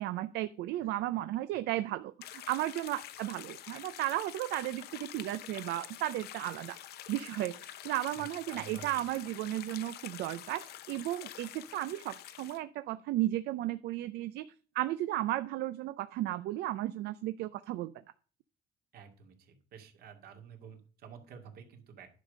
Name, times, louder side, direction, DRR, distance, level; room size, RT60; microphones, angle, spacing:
voice 1, 0.0-6.8 7.1-17.9, right 15 dB, 80° right, 12 dB, 0.5 m, -34 dB
sound 1, 2.2-12.6, left 12 dB, 70° left, 0.7 m, -47 dB
voice 2, 8.1-9.1 18.9-22.1, right 7 dB, 65° right, 3 dB, 2.4 m, -51 dB
10.5 x 5.2 x 6.4 m, 0.40 s
cardioid pair, 110°, 17 cm